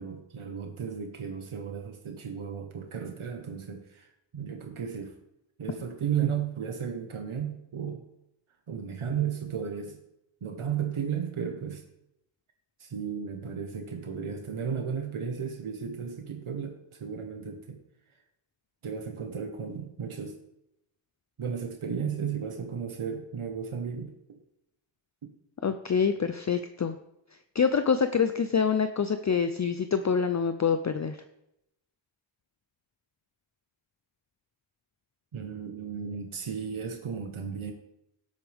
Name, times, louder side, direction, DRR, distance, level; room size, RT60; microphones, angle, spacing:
voice 1, 0.0-5.1 5.6-8.0 8.7-10.0 10.4-11.8 12.8-17.8 18.8-20.4 21.4-24.4 35.3-37.7, right 7 dB, 75° right, 4 dB, 1.4 m, -34 dB
voice 2, 25.6-27.0 27.5-31.2, left 6 dB, 35° left, 9 dB, 0.5 m, -26 dB
17.0 x 8.2 x 3.5 m, 0.85 s
wide cardioid pair, 135°, 49 cm